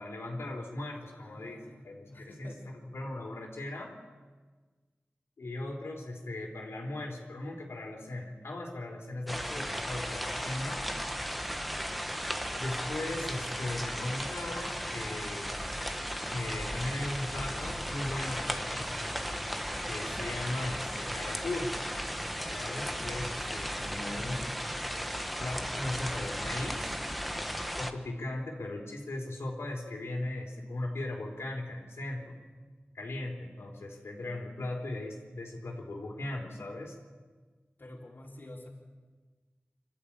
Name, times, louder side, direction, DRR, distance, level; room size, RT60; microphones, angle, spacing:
voice 1, 0.0-1.6 1.8-2.5 2.9-4.0 5.4-10.9 12.6-15.6 16.3-18.9 19.9-21.8 22.5-24.4 25.4-27.0 27.8-32.4 32.9-37.0, left 1 dB, 85° left, 0 dB, 3.7 m, -38 dB
voice 2, 0.9-2.6 23.7-24.4 37.8-38.7, left 1 dB, 50° left, -2 dB, 3.7 m, -49 dB
sound 1, 9.3-27.9, equal, ahead, 1.3 m, -35 dB
26.5 x 12.5 x 8.8 m, 1.4 s
wide cardioid pair, 90°, 4 cm